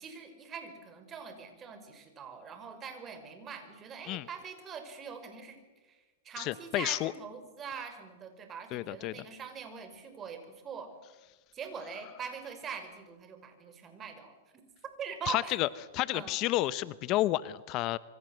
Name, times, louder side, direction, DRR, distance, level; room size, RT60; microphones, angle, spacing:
voice 1, 0.0-10.9 11.5-14.3 14.8-15.6 16.1-16.4, right 6 dB, 25° right, 8 dB, 5.3 m, -43 dB
voice 2, 6.4-7.1 8.7-9.1 15.3-15.7 15.9-18.0, left 16 dB, 40° left, 17 dB, 0.8 m, -30 dB
27.0 x 24.0 x 8.0 m, 1.2 s
hypercardioid pair, 130°, 0 cm